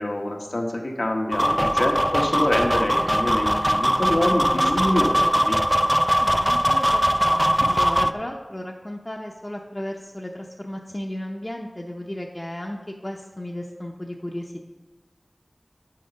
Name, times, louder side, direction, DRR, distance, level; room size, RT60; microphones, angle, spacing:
voice 1, 0.0-5.6, left 1 dB, 90° left, 1 dB, 1.1 m, -26 dB
sound 1, 1.3-8.1, equal, 10° right, 0.3 m, -21 dB
voice 2, 6.2-14.6, left 1 dB, 35° left, 0 dB, 0.6 m, -34 dB
6.6 x 6.6 x 5.4 m, 1.2 s
wide cardioid pair, 45°, 0 cm